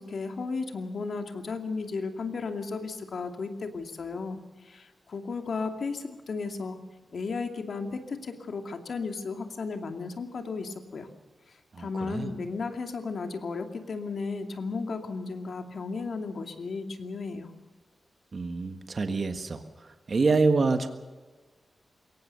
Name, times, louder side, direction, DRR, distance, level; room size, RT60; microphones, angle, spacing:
voice 1, 0.0-4.4 4.6-6.8 7.1-11.1 11.8-17.5, left 4 dB, 65° left, 5 dB, 2.5 m, -34 dB
voice 2, 11.8-12.3 18.3-19.6 20.1-20.9, right 3 dB, 50° right, 8 dB, 1.6 m, -26 dB
22.5 x 18.0 x 6.9 m, 1.3 s
wide cardioid pair, 105°, 0 cm